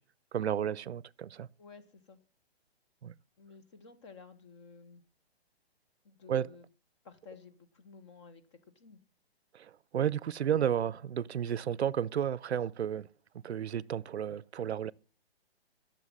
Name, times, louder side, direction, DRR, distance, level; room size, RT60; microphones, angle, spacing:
voice 1, 0.3-1.5 3.0-3.1 6.3-6.5 9.5-13.1 13.4-14.9, right 9 dB, 80° right, 0.7 m, -32 dB
voice 2, 1.6-2.2 3.4-5.0 6.0-6.6 7.0-9.0, left 5 dB, 25° left, 1.1 m, -53 dB
13.0 x 7.3 x 7.4 m
hypercardioid pair, 160°, 32 cm